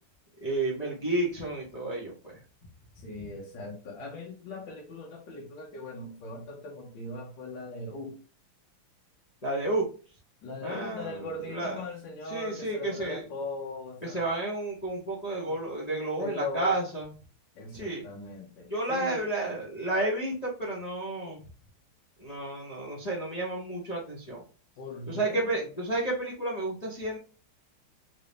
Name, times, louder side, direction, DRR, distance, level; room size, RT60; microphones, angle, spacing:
voice 1, 0.4-2.4 9.4-9.9 10.6-11.8 12.3-13.2 14.0-17.1 17.7-18.0 18.7-21.4 22.2-24.4 25.1-27.2, right 2 dB, 40° left, -4 dB, 0.6 m, -31 dB
voice 2, 3.0-8.2 10.4-14.2 15.5-15.6 16.2-16.8 17.6-19.3 24.8-25.7, left 2 dB, 65° left, -1 dB, 1.6 m, -39 dB
3.8 x 2.7 x 3.3 m, 0.36 s
omnidirectional pair, 2.3 m